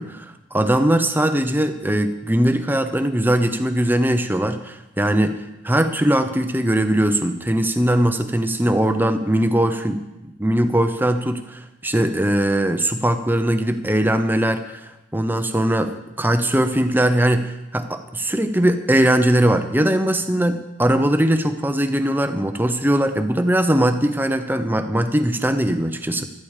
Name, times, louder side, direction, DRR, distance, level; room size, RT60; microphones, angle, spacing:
voice 1, 0.0-5.4 5.6-26.3, right 1 dB, 10° right, 9 dB, 0.8 m, -20 dB
16.0 x 13.0 x 5.0 m, 0.98 s
head